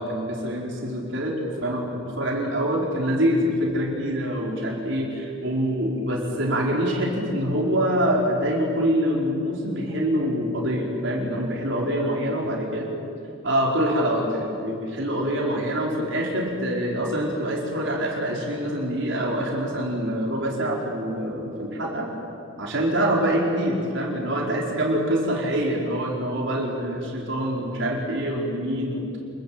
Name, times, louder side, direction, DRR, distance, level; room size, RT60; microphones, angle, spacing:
voice 1, 0.0-1.9 2.2-12.9 13.4-22.1 22.6-29.1, equal, 60° right, -2 dB, 4.6 m, -25 dB
27.0 x 22.5 x 8.8 m, 2.6 s
head